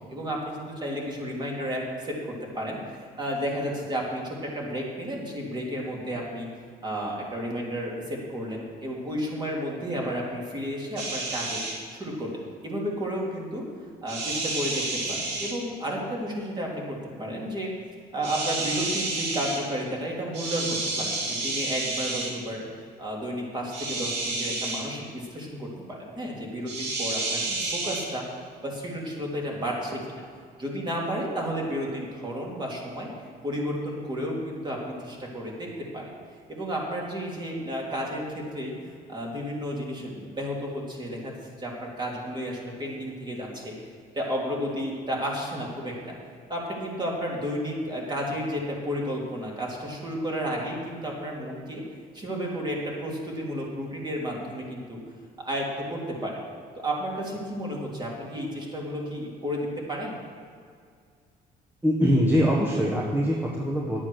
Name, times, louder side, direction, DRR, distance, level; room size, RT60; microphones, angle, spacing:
voice 1, 0.0-6.5 6.8-11.6 11.9-13.6 14.0-17.7 18.1-22.6 23.0-28.2 28.6-30.2 30.6-33.1 33.4-36.1 36.5-38.7 39.1-41.3 41.6-43.7 44.1-46.2 46.5-51.8 52.1-55.0 55.4-56.4 56.8-60.2, equal, 25° right, -2 dB, 3.0 m, -32 dB
sound 1, 11.0-11.8 14.1-15.5 18.2-19.6 20.3-22.3 23.7-24.8 26.7-28.0, right 2 dB, 90° right, 2.5 m, -30 dB
voice 2, 61.8-64.0, equal, 10° right, -3 dB, 1.4 m, -23 dB
10.5 x 8.6 x 6.5 m, 2.1 s
cardioid pair, 110°, 17 cm